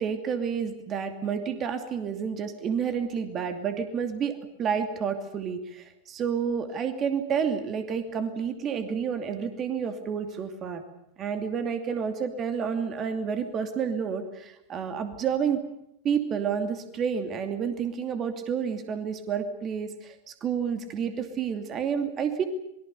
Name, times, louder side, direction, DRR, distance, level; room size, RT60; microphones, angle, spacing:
voice 1, 0.0-10.8 11.2-15.6 16.0-22.4, right 7 dB, 30° right, 8 dB, 2.6 m, -30 dB
27.0 x 22.5 x 6.9 m, 0.82 s
figure-of-eight pair, 90°, 0 cm